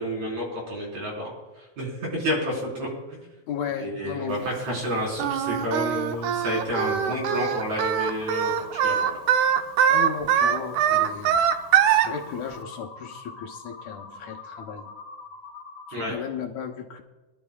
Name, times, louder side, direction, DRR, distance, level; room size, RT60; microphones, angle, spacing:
voice 1, 0.0-3.3 3.8-9.2 15.9-16.1, equal, 65° right, -3 dB, 5.5 m, -30 dB
voice 2, 3.5-4.8 9.9-11.4 11.9-14.9 15.9-17.0, left 7 dB, 70° left, 3 dB, 2.0 m, -35 dB
Singing, 5.2-12.1, right 9 dB, 80° right, 2.1 m, -22 dB
sound 1, 6.2-16.1, left 4 dB, 40° left, 2.4 m, -43 dB
24.5 x 12.0 x 2.3 m, 1.2 s
omnidirectional pair, 3.5 m